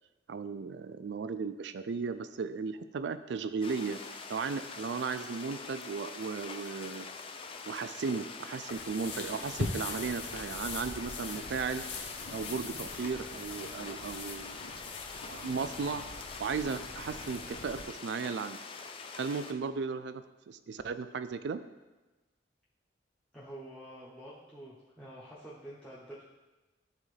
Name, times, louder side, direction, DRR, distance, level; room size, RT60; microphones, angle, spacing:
voice 1, 0.3-4.0 4.3-7.1 7.7-11.8 12.3-14.8 15.3-16.0 16.4-18.6 19.2-21.6, right 5 dB, 65° right, 12 dB, 0.4 m, -36 dB
sound 1, 3.6-19.5, left 4 dB, 30° left, 0.4 m, -45 dB
sound 2, 8.7-17.8, left 3 dB, 65° left, 0.7 m, -41 dB
voice 2, 23.3-26.2, right 1 dB, 5° left, -9 dB, 0.8 m, -48 dB
11.0 x 4.1 x 3.3 m, 1.2 s
head